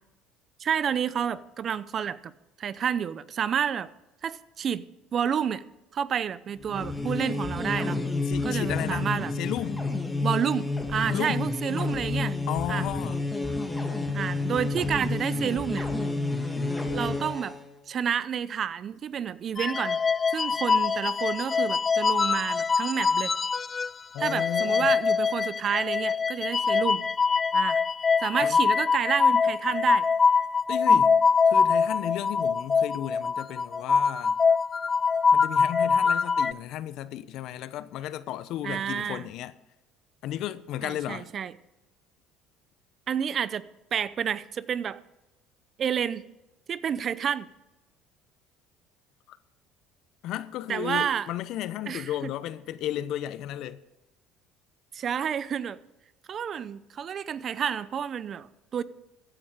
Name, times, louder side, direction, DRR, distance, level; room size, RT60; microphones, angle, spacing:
voice 1, 0.6-2.3 2.6-3.9 4.2-4.8 5.1-5.6 5.9-8.0 8.4-9.3 10.2-12.4 12.7-12.8 14.1-15.9 16.9-17.5 17.9-20.0 20.3-23.3 24.2-27.0 27.5-27.8 28.2-30.1 38.6-39.3 40.8-41.5 43.1-43.7 43.9-45.0 45.8-46.3 46.7-47.5 50.7-51.3 51.9-52.0 54.9-55.8 56.3-58.8, right 8 dB, 45° right, 0.6 m, -29 dB
sound 1, 6.6-17.6, left 3 dB, 10° left, 2.4 m, -30 dB
voice 2, 8.3-9.1 9.3-9.9 11.1-11.5 12.5-13.2 24.1-24.9 28.4-28.6 30.7-31.2 31.5-34.4 35.3-39.5 40.2-41.3 49.3-49.4 50.2-53.8, left 12 dB, 65° left, 0.8 m, -34 dB
sound 2, 19.6-23.9 24.2-36.5, left 5 dB, 30° left, 0.3 m, -24 dB
14.5 x 10.0 x 5.0 m
supercardioid pair, 90°, 0 cm